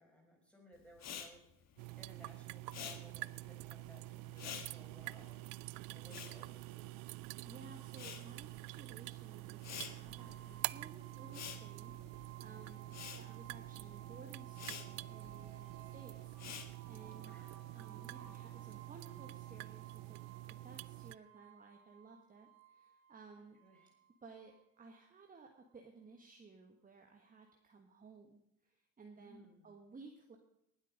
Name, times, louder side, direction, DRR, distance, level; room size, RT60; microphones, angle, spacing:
voice 1, 0.0-1.4 1.9-5.4 5.9-7.0 12.7-13.0 17.0-17.8 23.6-23.9 29.2-29.7, left 1 dB, 5° left, 0 dB, 4.9 m, -61 dB
Respiratory sounds, 0.9-7.4 7.7-17.1, left 8 dB, 40° left, 1.7 m, -50 dB
sound 1, 1.8-21.2, right 21 dB, 60° right, 0.5 m, -47 dB
voice 2, 7.4-17.4 17.7-20.2 20.6-23.6 24.2-30.4, right 4 dB, 20° right, 3 dB, 1.5 m, -57 dB
sound 2, 10.1-25.1, right 8 dB, 75° right, 2.8 m, -59 dB
19.0 x 8.2 x 5.2 m, 0.77 s
supercardioid pair, 90°, 38 cm